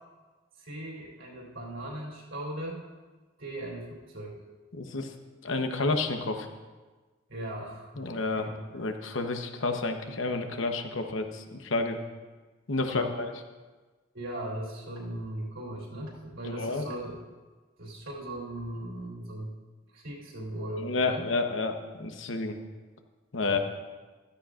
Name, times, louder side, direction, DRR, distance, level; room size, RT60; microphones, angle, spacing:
voice 1, 0.6-2.8 3.4-4.4 7.3-8.0 8.3-8.6 12.9-13.1 14.1-17.2 17.8-19.5 19.9-21.3 23.5-23.6, right 1 dB, 75° right, -4 dB, 3.4 m, -38 dB
voice 2, 4.7-5.1 5.4-6.5 8.0-8.5 8.7-12.0 12.7-13.3 16.6-16.8 20.8-22.6 23.3-23.6, left 3 dB, 70° left, 5 dB, 1.0 m, -30 dB
15.5 x 13.0 x 2.5 m, 1.3 s
head